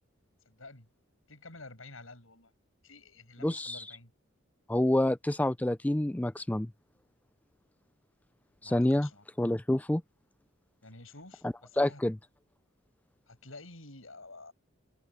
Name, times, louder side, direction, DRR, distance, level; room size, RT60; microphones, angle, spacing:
voice 1, 0.5-0.9 1.3-2.5 2.8-4.1 8.6-9.2 10.8-12.0 13.3-14.5, left 2 dB, 80° left, 7.1 m, -50 dB
voice 2, 3.4-3.8 4.7-6.7 8.6-9.1 9.4-10.0 11.4-12.2, left 1 dB, 5° left, 0.3 m, -28 dB
head